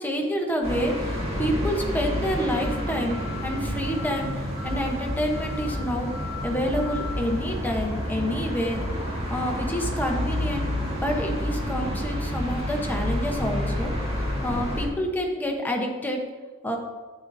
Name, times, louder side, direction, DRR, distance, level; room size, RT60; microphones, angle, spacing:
voice 1, 0.0-3.2 3.4-6.1 6.4-10.7 11.0-16.2 16.6-16.8, equal, 10° left, 1 dB, 0.9 m, -28 dB
sound 1, 0.6-14.9, left 1 dB, 30° right, 2.1 m, -29 dB
11.0 x 8.6 x 2.7 m, 1.4 s
head